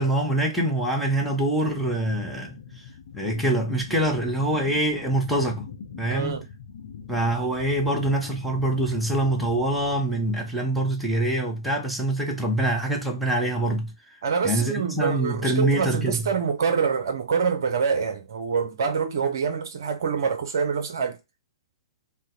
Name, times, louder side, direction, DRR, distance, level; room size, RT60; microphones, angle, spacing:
voice 1, 0.0-2.6 3.1-5.7 6.0-6.4 7.1-13.9 14.4-16.3, right 1 dB, ahead, 0.8 m, -25 dB
sound 1, 1.6-10.0, left 6 dB, 55° left, 0.7 m, -42 dB
voice 2, 6.1-6.5 14.2-21.2, right 6 dB, 50° right, 0.6 m, -26 dB
3.8 x 2.1 x 4.1 m
figure-of-eight pair, 120°, 2 cm